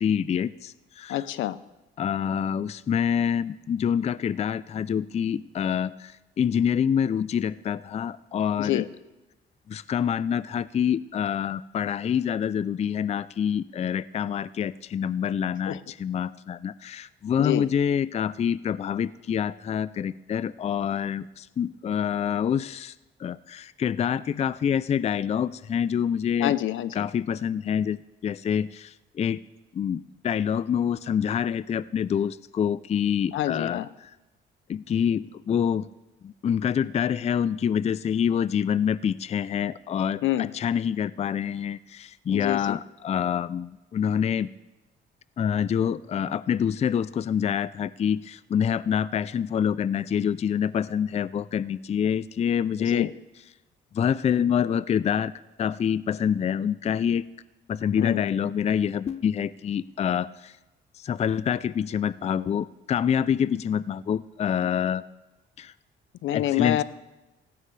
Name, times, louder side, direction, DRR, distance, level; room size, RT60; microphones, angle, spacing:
voice 1, 0.0-1.2 2.0-6.1 6.4-8.9 9.7-22.9 23.2-26.5 27.0-29.4 29.7-34.1 34.7-35.9 36.2-44.5 45.4-53.1 53.9-55.3 55.6-57.2 57.7-60.5 61.0-65.0 65.6-65.7 66.3-66.8, left 8 dB, 35° left, 18 dB, 0.4 m, -26 dB
voice 2, 1.1-1.6 8.6-8.9 15.7-15.8 17.4-17.7 26.4-26.9 33.3-33.9 40.2-40.5 42.3-42.8 52.8-53.1 58.0-58.2 66.2-66.8, left 13 dB, 75° left, 16 dB, 0.6 m, -27 dB
16.5 x 16.5 x 3.3 m, 1.0 s
cardioid pair, 90°, 20 cm